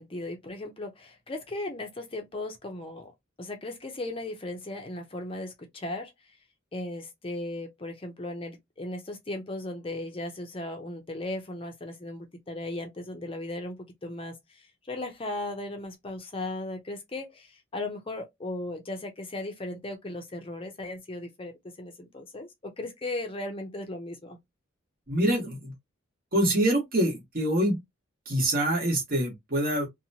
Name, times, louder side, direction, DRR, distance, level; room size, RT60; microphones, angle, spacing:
voice 1, 0.0-3.1 3.4-6.1 6.7-24.4, left 2 dB, 25° left, 0.6 m, -37 dB
voice 2, 25.1-25.7 26.3-27.8 28.3-29.9, right 1 dB, 45° right, 1.2 m, -25 dB
2.8 x 2.1 x 2.7 m
head